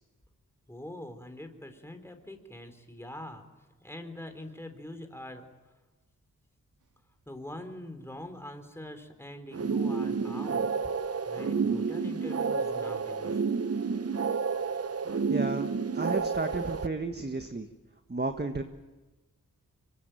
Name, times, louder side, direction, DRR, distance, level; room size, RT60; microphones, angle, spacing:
voice 1, 0.7-3.5 3.8-5.5 7.3-10.9 11.3-13.4, left 1 dB, 5° left, 6 dB, 4.0 m, -43 dB
Dog, 6.8-7.1 7.4-7.5 7.7-8.4 9.0-9.3 9.6-9.7 9.8-9.9 10.1-13.0, equal, 60° right, 2.2 m, -52 dB
sound 1, 9.5-16.9, right 5 dB, 45° right, 1.0 m, -30 dB
voice 2, 15.3-17.7 18.1-18.6, right 3 dB, 30° right, 6 dB, 1.6 m, -33 dB
25.0 x 23.5 x 9.2 m, 1.2 s
cardioid pair, 55°, 34 cm